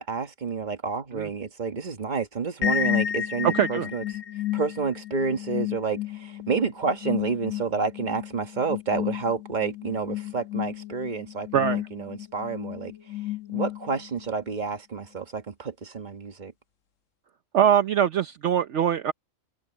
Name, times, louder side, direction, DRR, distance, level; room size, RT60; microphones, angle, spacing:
voice 1, 0.0-4.0 4.5-12.9 13.5-16.5, right 5 dB, 35° right, 1.5 m, -29 dB
sound 1, 2.6-14.3, left 11 dB, 85° left, 1.4 m, -32 dB
voice 2, 3.5-3.9 11.5-11.8 17.5-19.1, right 9 dB, 65° right, 1.0 m, -22 dB
omnidirectional pair, 1.3 m